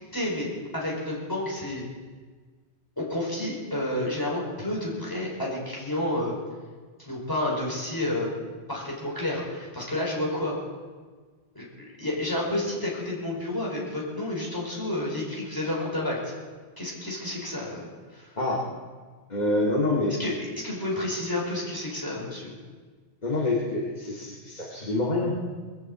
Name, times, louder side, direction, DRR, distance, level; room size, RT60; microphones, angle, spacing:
voice 1, 0.1-1.8 3.0-6.4 7.0-8.3 8.7-10.6 11.5-16.3 16.8-17.9 18.1-18.3 20.2-22.5, left 1 dB, 20° left, -4 dB, 4.9 m, -30 dB
voice 2, 19.3-20.2 23.2-25.5, left 2 dB, 40° left, -3 dB, 2.2 m, -26 dB
20.5 x 8.3 x 8.6 m, 1.5 s
omnidirectional pair, 1.1 m